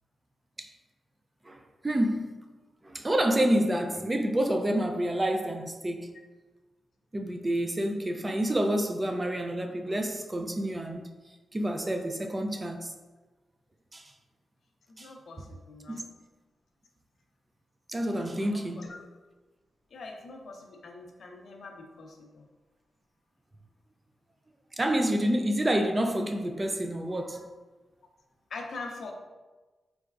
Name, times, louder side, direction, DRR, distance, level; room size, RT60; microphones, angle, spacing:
voice 1, 1.5-2.5 2.8-6.1 7.1-11.0 11.5-12.9 13.9-14.1 15.0-15.1 16.0-16.1 17.9-18.9 24.8-27.5, right 1 dB, 20° right, 0.3 m, -28 dB
voice 2, 14.9-16.1 18.5-19.0 19.9-22.4 28.5-29.1, left 3 dB, 65° left, 0.5 m, -43 dB
3.9 x 3.3 x 2.3 m
wide cardioid pair, 110°, 0 cm